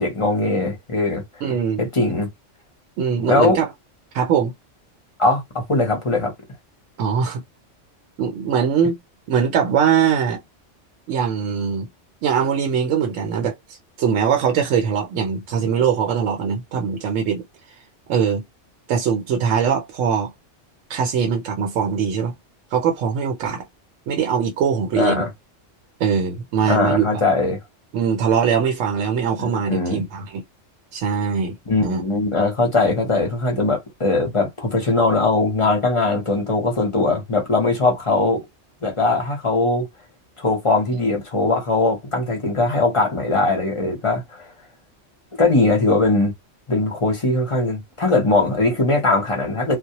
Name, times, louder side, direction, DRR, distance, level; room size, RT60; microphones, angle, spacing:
voice 1, 0.0-1.2 1.8-2.3 3.2-3.6 5.2-6.3 25.0-25.3 26.7-27.6 29.4-30.0 31.7-38.4 38.8-39.9 40.4-44.4 45.4-46.3 46.7-49.8, left 2 dB, 30° left, 0.7 m, -20 dB
voice 2, 1.4-1.9 3.0-3.7 4.1-4.5 7.0-7.4 8.2-9.0 9.3-10.4 11.1-11.9 12.2-17.4 18.1-18.4 18.9-20.3 20.9-22.3 22.7-23.6 24.1-25.3 26.0-27.2 27.9-30.4 30.9-32.0, right 7 dB, 80° right, 0.9 m, -21 dB
2.1 x 2.1 x 2.8 m
omnidirectional pair, 1.3 m